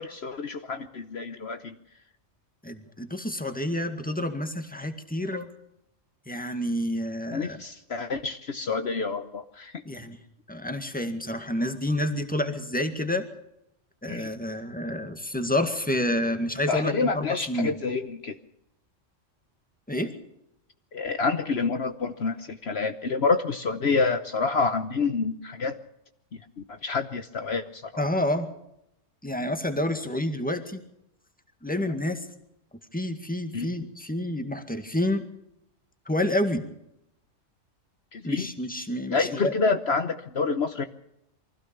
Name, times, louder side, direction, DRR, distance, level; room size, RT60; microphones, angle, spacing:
voice 1, 0.0-1.7 7.3-9.7 14.1-14.3 16.7-18.3 20.9-25.8 26.7-28.0 33.5-33.7 38.1-38.5 39.1-40.8, left 4 dB, 60° left, 9 dB, 1.2 m, -28 dB
voice 2, 2.6-5.5 6.3-7.6 9.9-10.2 10.5-13.2 14.0-17.7 19.9-20.2 28.0-28.5 29.2-30.8 31.6-32.3 32.9-35.3 36.1-36.6 38.2-39.5, left 1 dB, 5° left, 7 dB, 2.0 m, -29 dB
24.0 x 16.0 x 7.0 m, 0.81 s
omnidirectional pair, 1.3 m